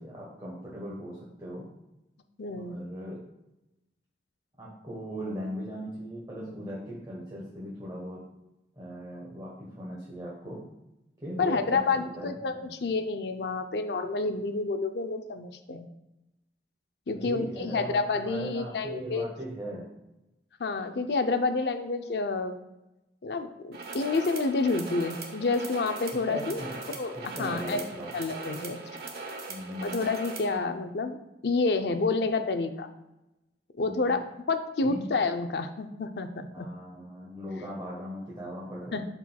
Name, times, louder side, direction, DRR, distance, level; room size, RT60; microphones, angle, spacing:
voice 1, 0.0-1.7 2.5-3.2 4.6-8.2 8.8-10.6 11.2-12.7 17.1-18.0 18.2-19.9 26.1-26.7 27.1-28.1 29.5-30.1 33.8-34.2 34.8-35.1 36.5-39.0, equal, 20° right, -6 dB, 1.2 m, -39 dB
voice 2, 2.4-2.9 11.4-15.9 17.1-19.3 20.6-22.6 23.2-26.6 26.9-28.8 29.8-31.2 31.4-32.9 33.8-36.7 38.9-39.0, left 3 dB, 65° left, 7 dB, 0.5 m, -29 dB
sound 1, 23.7-30.6, right 3 dB, 55° right, 0.9 m, -40 dB
11.5 x 4.4 x 2.3 m, 0.93 s
head